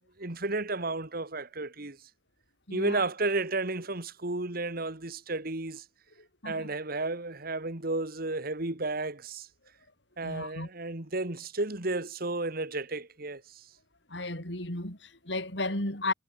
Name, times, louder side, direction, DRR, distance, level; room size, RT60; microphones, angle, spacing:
voice 1, 0.2-2.1 2.7-5.9 6.4-9.5 10.2-13.7, right 2 dB, 55° right, 2.4 m, -33 dB
voice 2, 2.7-3.1 6.2-6.7 10.2-10.7 14.1-16.1, left 2 dB, 70° left, 7.5 m, -34 dB
head